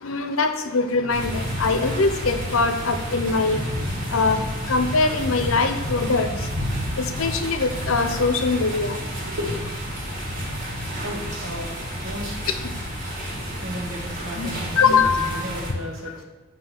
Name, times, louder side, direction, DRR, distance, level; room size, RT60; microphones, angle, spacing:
voice 1, 0.0-3.6 4.1-4.4 4.7-6.3 7.0-8.9 14.4-15.3, left 4 dB, 90° left, 7 dB, 0.7 m, -22 dB
sound 1, 1.1-15.7, equal, 40° right, 1.6 m, -30 dB
voice 2, 9.2-9.7 11.0-12.3 13.5-16.2, equal, 75° right, 0 dB, 1.0 m, -34 dB
8.0 x 2.8 x 5.8 m, 1.3 s
head